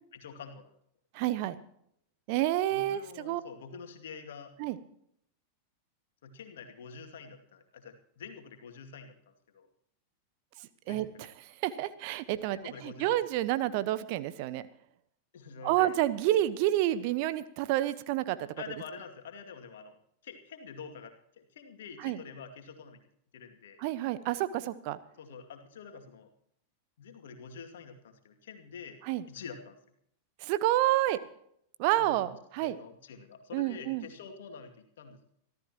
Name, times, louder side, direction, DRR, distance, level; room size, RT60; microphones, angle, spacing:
voice 1, 0.1-0.7 2.7-4.5 6.2-9.7 10.9-11.3 12.5-13.2 15.3-15.9 18.6-20.0 20.2-23.0 23.3-23.8 25.2-26.3 27.0-29.0 29.3-29.8 32.0-32.3 32.6-35.3, left 5 dB, 60° left, 5 dB, 2.4 m, -47 dB
voice 2, 1.1-1.5 2.3-3.4 4.6-4.8 10.9-11.1 11.6-12.6 12.8-14.6 15.6-18.5 22.0-22.2 23.8-25.0 29.1-29.2 30.4-31.2 31.8-32.8 33.5-34.0, right 14 dB, 45° right, 14 dB, 1.1 m, -29 dB
25.0 x 14.5 x 3.0 m, 0.70 s
figure-of-eight pair, 90°, 0 cm